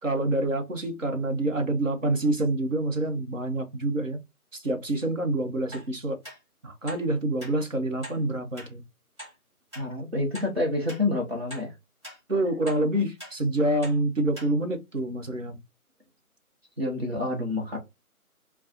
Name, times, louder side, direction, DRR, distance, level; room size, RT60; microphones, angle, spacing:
voice 1, 0.0-4.2 4.5-6.2 6.6-8.8 12.3-15.6, right 1 dB, 60° right, 1.2 m, -27 dB
sound 1, 5.7-5.9 6.2-6.4 6.9-7.0 7.4-7.5 8.0-8.2 8.6-8.7 9.2-9.3 9.7-9.8 10.3-10.5 10.9-11.0 11.5-11.7 12.0-12.2 12.7-12.8 13.2-13.3 13.8-14.0 14.3-14.5 15.0-15.1, equal, 20° right, 1.6 m, -42 dB
voice 2, 9.7-11.7 16.8-17.8, left 2 dB, 45° right, 1.2 m, -28 dB
4.3 x 2.3 x 2.6 m
figure-of-eight pair, 160°, 44 cm